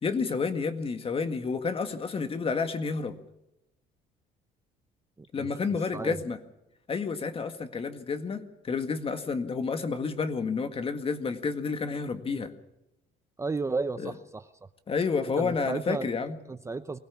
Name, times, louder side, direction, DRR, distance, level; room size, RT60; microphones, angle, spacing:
voice 1, 0.0-3.2 5.3-6.4 6.9-12.5 14.0-14.1 14.9-16.4, left 5 dB, 35° left, 8 dB, 1.9 m, -30 dB
voice 2, 13.4-14.5 15.4-16.1 16.5-17.0, right 3 dB, 15° right, 11 dB, 0.7 m, -33 dB
23.5 x 17.5 x 7.2 m, 0.88 s
cardioid pair, 110°, 17 cm